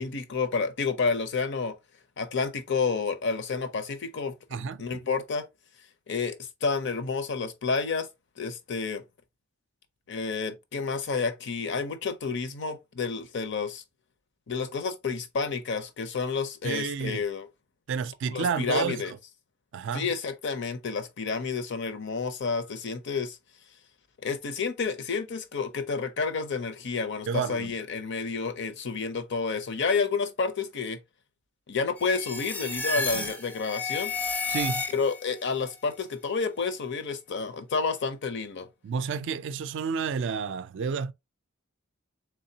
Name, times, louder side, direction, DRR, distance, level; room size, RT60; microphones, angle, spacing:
voice 1, 0.0-1.8 2.2-5.5 6.1-8.1 8.4-9.0 10.1-13.8 14.5-17.5 18.3-19.1 19.9-23.4 24.2-31.0 31.7-34.1 34.9-38.7, left 4 dB, 55° left, 0.6 m, -30 dB
voice 2, 4.5-4.8 16.6-17.2 17.9-19.2 19.7-20.1 27.3-27.7 33.1-33.3 34.5-34.8 38.8-41.1, right 6 dB, 60° right, 0.3 m, -30 dB
sound 1, 32.0-35.3, left 3 dB, 10° left, 0.4 m, -32 dB
3.5 x 3.4 x 2.7 m
head